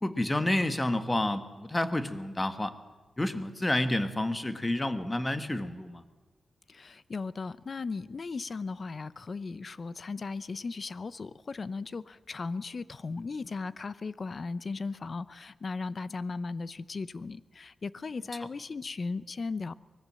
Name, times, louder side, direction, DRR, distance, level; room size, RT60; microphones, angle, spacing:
voice 1, 0.0-2.8 3.2-6.0, left 1 dB, 15° left, 10 dB, 1.4 m, -29 dB
voice 2, 6.7-19.7, left 4 dB, 40° left, 17 dB, 0.7 m, -37 dB
24.0 x 20.0 x 7.6 m, 1.2 s
wide cardioid pair, 125°, 0 cm